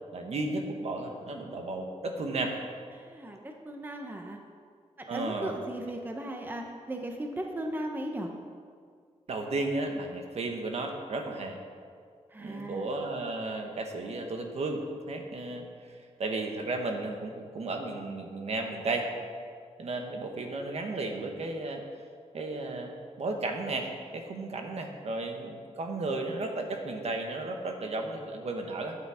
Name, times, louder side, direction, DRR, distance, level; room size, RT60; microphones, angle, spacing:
voice 1, 0.1-2.5 5.1-5.5 9.3-11.6 12.4-14.8 15.1-19.1 19.8-21.8 22.3-22.9 23.2-29.0, right 2 dB, 60° right, 3 dB, 1.4 m, -34 dB
voice 2, 2.9-4.4 5.0-8.3 12.3-12.9, right 1 dB, 15° right, 2 dB, 1.0 m, -37 dB
12.0 x 8.7 x 5.0 m, 2.1 s
wide cardioid pair, 125°, 12 cm